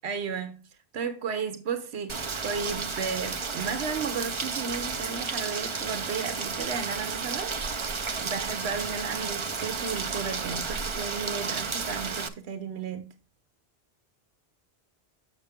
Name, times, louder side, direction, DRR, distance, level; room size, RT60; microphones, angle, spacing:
voice 1, 0.0-0.7 0.9-7.6 8.2-13.1, right 5 dB, 90° right, 1.1 m, -34 dB
Rain, 2.1-12.3, right 5 dB, 35° right, 0.5 m, -32 dB
6.8 x 6.6 x 3.5 m
omnidirectional pair, 1.1 m